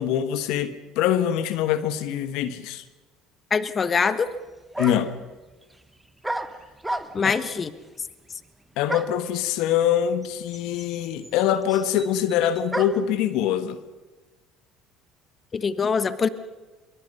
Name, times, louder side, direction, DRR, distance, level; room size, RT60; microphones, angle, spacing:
voice 1, 0.0-2.8 4.8-5.1 8.8-13.8, left 10 dB, 70° left, 1.4 m, -24 dB
voice 2, 3.5-4.3 7.1-7.7 15.5-16.3, left 5 dB, 35° left, 1.3 m, -23 dB
sound 1, 4.3-4.4 4.7-5.2 6.2-7.4 8.9-9.3 10.2-10.3 10.5-13.1, right 1 dB, 10° right, 1.4 m, -32 dB
24.0 x 23.0 x 5.5 m
hypercardioid pair, 75°, 0 cm